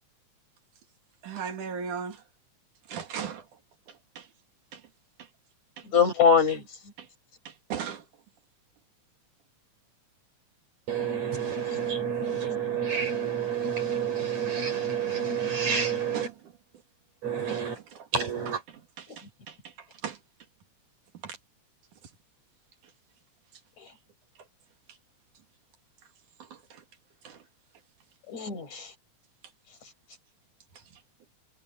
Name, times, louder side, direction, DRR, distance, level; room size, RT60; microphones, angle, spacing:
voice 1, 1.2-2.2 2.9-3.5 3.9-4.3 4.7-4.8 5.2-5.3 5.8-5.9 7.0-7.1 7.5-8.1 16.1-16.3 17.5-18.1 19.0-20.2 21.2-21.4 26.4-26.8 27.2-27.4 30.7-31.0, right 7 dB, 80° right, 3.6 m, -38 dB
voice 2, 5.8-6.9 19.1-19.2 23.8-23.9 28.3-28.9 29.8-29.9, left 6 dB, 65° left, 6.7 m, -24 dB
voice 3, 10.9-16.3 17.2-17.8 18.1-18.6, right 7 dB, 60° right, 7.0 m, -29 dB
omnidirectional pair, 3.5 m